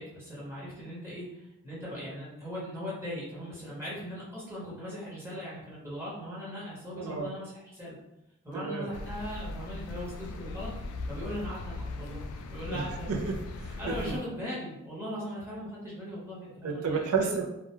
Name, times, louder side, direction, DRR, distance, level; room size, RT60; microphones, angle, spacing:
voice 1, 0.0-8.0 8.4-10.7 11.1-12.2 12.5-13.1 13.8-17.0, equal, 10° right, -7 dB, 0.9 m, -39 dB
voice 2, 7.0-7.3 8.5-8.9 12.7-12.8 13.1-13.7 14.1-14.2 16.6-17.4, right 5 dB, 70° right, 1 dB, 0.4 m, -31 dB
sound 1, 8.9-14.2, left 2 dB, 70° left, 0.3 m, -39 dB
2.3 x 2.2 x 2.9 m, 0.87 s
head